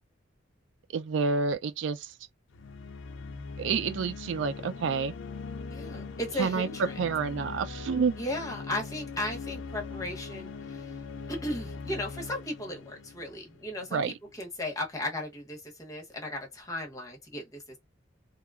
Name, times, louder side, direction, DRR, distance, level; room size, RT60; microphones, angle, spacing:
voice 1, 0.9-2.1 3.6-5.1 6.4-6.7 7.0-8.2 13.9-14.1, right 5 dB, 75° right, 0.3 m, -29 dB
sound 1, 2.5-14.0, left 4 dB, 85° left, 0.5 m, -41 dB
voice 2, 5.7-7.0 8.2-11.0 11.3-17.8, left 1 dB, 15° left, 0.8 m, -36 dB
2.9 x 2.3 x 2.3 m
head